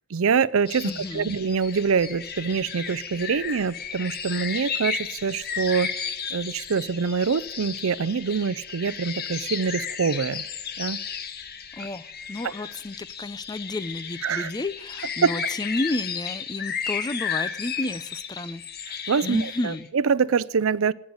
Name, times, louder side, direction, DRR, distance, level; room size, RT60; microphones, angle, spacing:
voice 1, 0.1-5.9 6.3-10.4 10.8-11.0 14.2-14.5 15.2-15.3 19.1-20.9, right 5 dB, 70° right, 19 dB, 0.5 m, -25 dB
sound 1, 0.7-19.9, left 7 dB, 45° left, 1.3 m, -34 dB
voice 2, 0.8-1.3 11.8-18.6 19.2-19.9, left 2 dB, 20° left, 17 dB, 0.5 m, -31 dB
18.5 x 6.6 x 9.6 m, 0.92 s
head